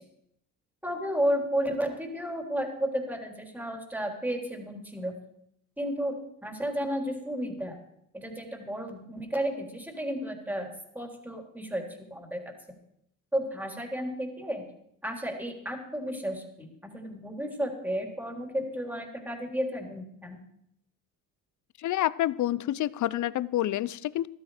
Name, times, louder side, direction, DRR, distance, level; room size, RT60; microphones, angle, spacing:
voice 1, 0.8-5.1 5.8-6.2 6.4-7.8 8.1-10.7 10.9-11.8 12.1-12.4 13.3-14.6 15.0-16.7 16.9-20.4, equal, 5° right, 2 dB, 3.6 m, -32 dB
voice 2, 21.8-24.3, left 13 dB, 50° left, 20 dB, 0.6 m, -28 dB
14.0 x 12.5 x 5.0 m, 0.75 s
supercardioid pair, 70°, 39 cm